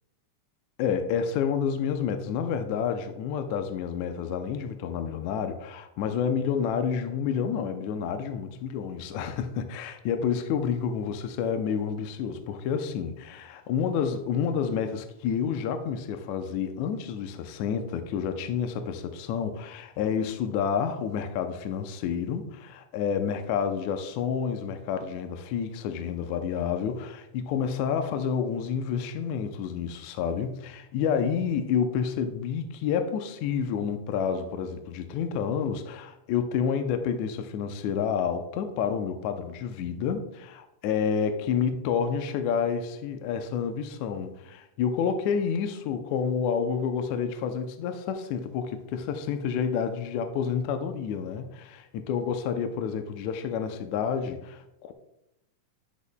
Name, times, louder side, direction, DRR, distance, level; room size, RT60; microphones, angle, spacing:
voice 1, 0.8-54.9, left 7 dB, 80° left, 7 dB, 1.8 m, -29 dB
10.0 x 8.2 x 2.2 m, 0.86 s
omnidirectional pair, 3.8 m